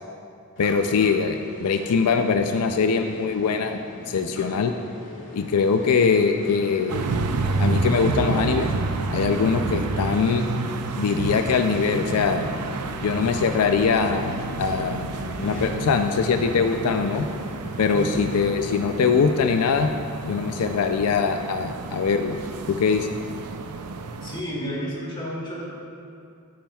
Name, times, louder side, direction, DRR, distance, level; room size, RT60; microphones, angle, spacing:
voice 1, 0.6-3.8 4.1-4.7 5.3-7.1 7.6-8.7 9.1-10.4 11.0-12.5 13.0-15.1 15.4-17.3 17.8-19.9 20.2-22.4 22.7-23.1, left 5 dB, 85° left, 6 dB, 0.4 m, -22 dB
Elevador moving Roomtone, 0.6-19.8, left 1 dB, 55° left, 2.2 m, -40 dB
sound 1, 6.9-24.4, right 3 dB, 90° right, 0.5 m, -30 dB
voice 2, 17.9-18.4 24.2-25.6, equal, 25° left, -6 dB, 2.4 m, -31 dB
14.5 x 8.6 x 2.3 m, 2.4 s
head